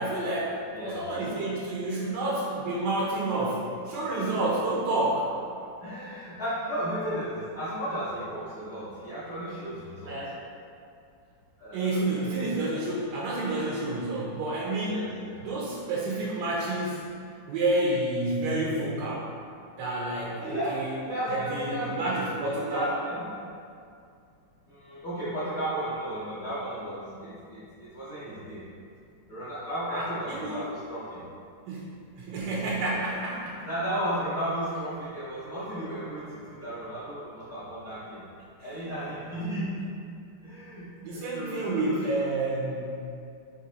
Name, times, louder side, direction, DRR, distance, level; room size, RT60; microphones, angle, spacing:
voice 1, 0.0-5.3 10.1-10.3 11.7-15.1 15.4-17.1 17.5-19.3 19.8-20.9 21.3-23.0 29.9-30.6 31.7-33.7 38.6-38.8 41.0-43.0, right 2 dB, 75° right, -4 dB, 1.0 m, -29 dB
voice 2, 0.7-1.0 5.8-10.2 11.6-12.5 14.8-15.4 20.1-22.2 22.5-23.3 24.7-28.7 29.3-31.2 33.4-38.2 38.6-39.8 40.4-42.0, right 1 dB, 50° left, -12 dB, 0.8 m, -34 dB
4.1 x 2.6 x 3.9 m, 2.4 s
omnidirectional pair, 2.2 m